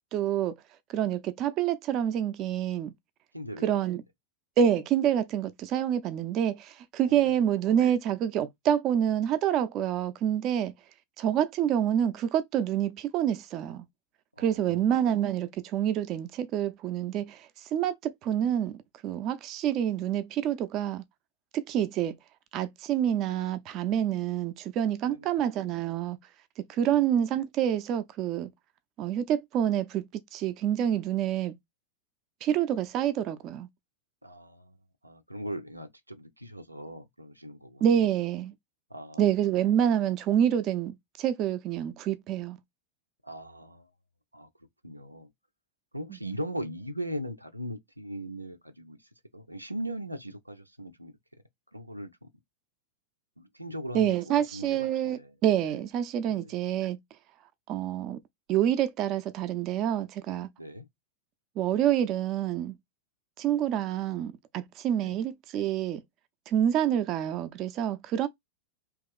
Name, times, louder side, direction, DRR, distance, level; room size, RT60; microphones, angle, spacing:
voice 1, 0.1-0.5 0.9-2.9 3.6-4.0 4.6-10.7 11.2-13.8 14.4-21.0 21.5-22.2 22.5-26.2 26.7-28.5 29.0-31.5 32.4-33.7 37.8-38.5 39.2-42.6 53.9-57.0 57.7-58.2 58.5-60.5 61.6-62.7 63.4-66.0 66.5-68.3, right 10 dB, 35° right, 0.4 m, -27 dB
voice 2, 3.3-3.8 7.0-7.4 14.4-14.8 25.0-25.5 34.2-34.8 35.0-38.1 38.9-39.5 43.2-43.9 44.3-44.5 44.8-45.3 45.9-49.0 49.3-51.1 51.7-52.3 53.4-55.4 56.3-56.5 60.6-60.9 65.0-65.2, equal, 85° right, 0.6 m, -39 dB
3.0 x 2.8 x 3.6 m
figure-of-eight pair, 90°, 0 cm